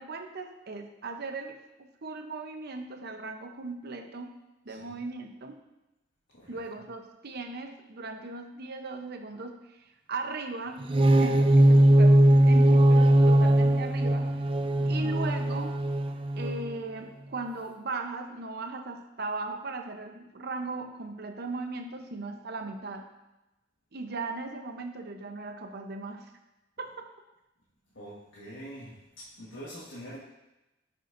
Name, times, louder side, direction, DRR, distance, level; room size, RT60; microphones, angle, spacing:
voice 1, 0.0-4.3 4.7-5.6 6.5-10.8 11.2-12.2 12.5-14.4 14.8-15.8 16.4-23.1 23.9-26.3 26.8-27.1, right 3 dB, 55° right, 5 dB, 0.8 m, -38 dB
voice 2, 6.3-6.8 14.8-15.2 27.9-30.2, equal, 80° left, -7 dB, 1.5 m, -45 dB
sound 1, 10.8-16.7, right 1 dB, 30° right, 0.4 m, -20 dB
11.0 x 5.9 x 2.6 m, 0.98 s
head